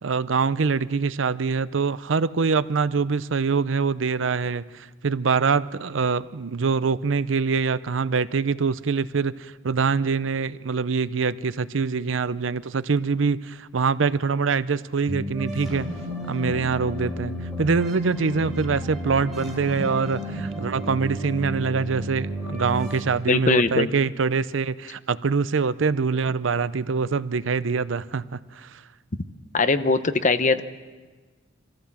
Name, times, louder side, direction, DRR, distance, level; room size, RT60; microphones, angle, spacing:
voice 1, 0.0-15.9 16.3-28.8, right 5 dB, 80° right, 16 dB, 0.6 m, -24 dB
sound 1, 15.1-23.0, equal, ahead, 3.9 m, -32 dB
voice 2, 23.3-23.9 29.5-30.6, left 3 dB, 40° left, 11 dB, 0.9 m, -21 dB
25.0 x 15.0 x 7.3 m, 1.3 s
head